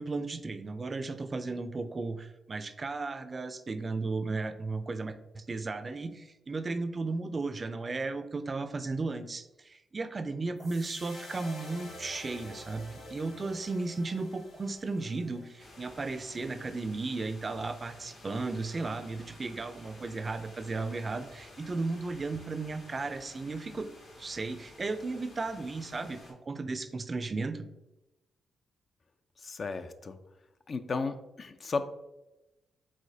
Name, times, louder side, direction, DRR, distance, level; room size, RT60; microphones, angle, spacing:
voice 1, 0.0-23.9 24.2-27.7, right 3 dB, 40° right, 10 dB, 0.4 m, -35 dB
sound 1, 10.6-16.9, left 1 dB, 90° left, 1.4 m, -49 dB
sound 2, 15.6-26.3, left 1 dB, 70° left, 1.5 m, -53 dB
voice 2, 29.4-30.2 30.7-31.8, left 4 dB, 50° left, 9 dB, 0.4 m, -34 dB
4.8 x 3.6 x 2.7 m, 0.96 s
supercardioid pair, 55°, 0 cm